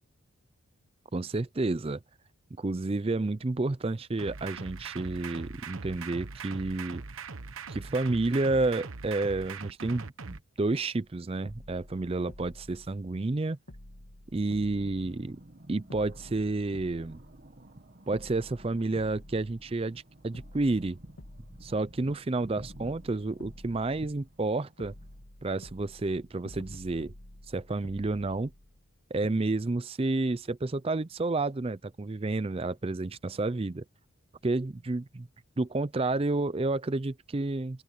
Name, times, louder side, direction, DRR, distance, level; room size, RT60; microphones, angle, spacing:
voice 1, 1.1-2.0 2.6-7.0 7.7-13.6 14.3-15.4 15.7-17.2 18.1-21.0 21.6-25.0 25.4-27.1 27.5-28.5 29.1-33.8 34.4-35.3 35.6-37.8, right 2 dB, 25° right, 0.4 m, -30 dB
sound 1, 4.2-10.4, right 4 dB, 75° right, 1.2 m, -41 dB
sound 2, 11.0-11.1 11.4-13.4 13.7-15.6 15.9-17.8 18.1-20.0 20.3-22.2 22.6-24.5 24.8-28.9 29.2-29.3, left 1 dB, 75° left, 2.2 m, -50 dB
sound 3, 14.3-25.2, right 1 dB, 40° right, 1.4 m, -53 dB
open air
head